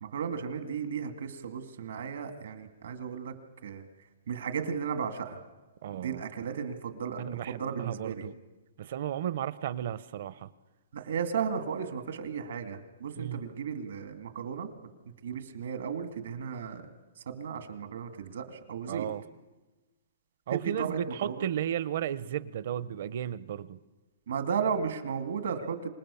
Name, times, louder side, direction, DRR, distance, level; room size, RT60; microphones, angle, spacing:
voice 1, 0.0-3.3 3.6-3.8 4.3-5.4 5.9-8.3 10.9-14.7 15.2-16.8 17.3-19.1 20.5-21.5 24.3-25.9, right 6 dB, 70° right, 7 dB, 2.2 m, -34 dB
voice 2, 5.8-6.2 7.2-8.3 8.8-10.5 13.2-13.4 18.9-19.2 20.5-23.8, right 10 dB, 45° right, 17 dB, 0.7 m, -34 dB
26.0 x 19.5 x 7.0 m, 1.2 s
hypercardioid pair, 175°, 0 cm